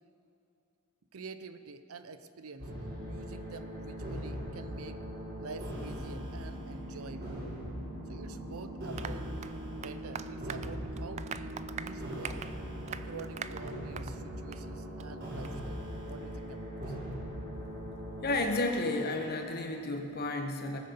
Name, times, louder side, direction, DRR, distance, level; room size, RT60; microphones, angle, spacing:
voice 1, 1.1-2.7 3.1-5.0 5.4-7.4 8.1-9.3 9.7-12.4 12.9-17.0, right 4 dB, 75° right, 11 dB, 0.7 m, -47 dB
sound 1, 2.6-19.5, equal, 50° right, 4.0 m, -40 dB
Applause, 9.0-14.2 14.5-14.7 15.0-15.1 15.4-15.5, right 7 dB, 30° right, 0.3 m, -43 dB
voice 2, 18.2-20.8, left 2 dB, 45° left, 4 dB, 1.3 m, -32 dB
18.5 x 6.7 x 7.1 m, 2.6 s
head